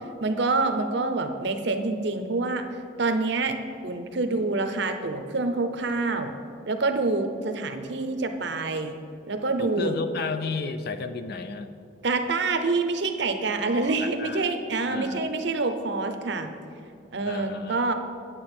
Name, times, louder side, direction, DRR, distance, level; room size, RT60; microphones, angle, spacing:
voice 1, 0.2-2.6 3.0-3.6 3.8-6.3 6.7-9.0 9.3-10.0 12.0-16.5 17.1-17.9, right 3 dB, 55° right, 7 dB, 0.7 m, -26 dB
voice 2, 9.6-11.7 13.6-14.5 14.9-15.3 17.2-17.8, left 4 dB, 50° left, 10 dB, 0.4 m, -33 dB
8.7 x 8.6 x 4.4 m, 2.5 s
head